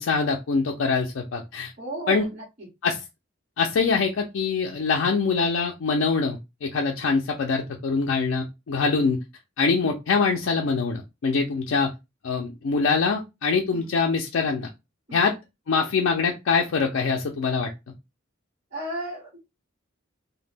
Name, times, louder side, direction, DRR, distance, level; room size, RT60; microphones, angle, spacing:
voice 1, 0.0-1.7 2.1-2.2 2.8-3.0 3.6-9.2 9.6-11.9 12.2-14.7 15.1-15.3 15.7-17.7, left 4 dB, 80° left, 1 dB, 0.4 m, -24 dB
voice 2, 1.8-2.7 11.7-11.8 13.7-13.9 15.1-15.3 18.7-19.3, right 1 dB, 45° right, -6 dB, 1.1 m, -34 dB
2.1 x 2.1 x 3.3 m, 0.23 s
head